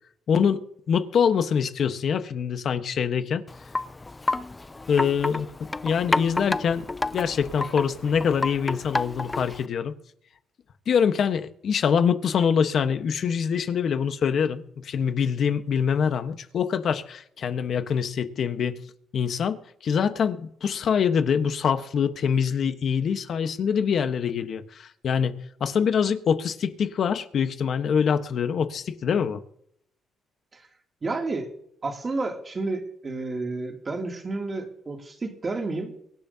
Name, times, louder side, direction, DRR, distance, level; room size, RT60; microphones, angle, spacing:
voice 1, 0.3-3.4 4.9-5.5 5.8-6.9 7.1-9.9 10.9-18.8 19.1-29.4, left 7 dB, 60° left, 1.2 m, -24 dB
Wind chime, 3.5-9.7, left 2 dB, 20° left, 0.5 m, -30 dB
voice 2, 31.0-31.5 31.8-35.9, right 3 dB, 35° right, 2.8 m, -31 dB
24.0 x 10.5 x 2.8 m
cardioid pair, 90°, 0 cm